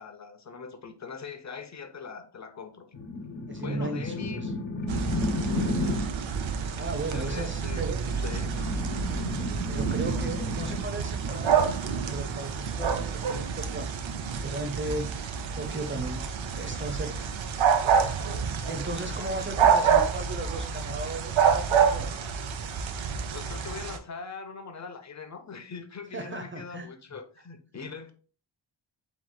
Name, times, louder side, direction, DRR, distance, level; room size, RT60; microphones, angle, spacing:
voice 1, 0.0-2.9 3.6-4.5 7.0-7.9 8.1-8.7 23.3-28.1, left 5 dB, 40° left, 0.8 m, -41 dB
sound 1, 2.9-6.2 8.0-10.8, left 2 dB, 75° left, 1.2 m, -32 dB
voice 2, 3.5-4.5 6.8-8.1 9.7-13.9 14.4-15.1 15.5-16.3 16.5-17.3 18.7-22.1 26.1-26.9, right 2 dB, 25° right, 0.6 m, -36 dB
sound 2, 4.9-24.0, right 6 dB, 80° right, 0.7 m, -28 dB
7.6 x 3.1 x 2.2 m
wide cardioid pair, 120°, 46 cm